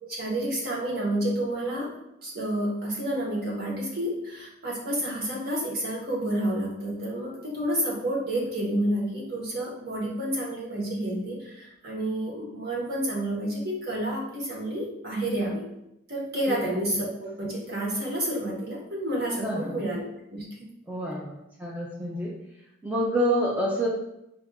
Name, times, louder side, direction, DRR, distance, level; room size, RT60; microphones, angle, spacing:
voice 1, 0.0-1.9 2.2-15.6 16.1-20.0 20.3-20.4, right 1 dB, 50° right, -4 dB, 1.2 m, -29 dB
voice 2, 19.4-19.7 20.9-22.3 22.8-23.9, equal, 5° right, -4 dB, 0.5 m, -27 dB
4.6 x 2.6 x 3.5 m, 0.84 s
head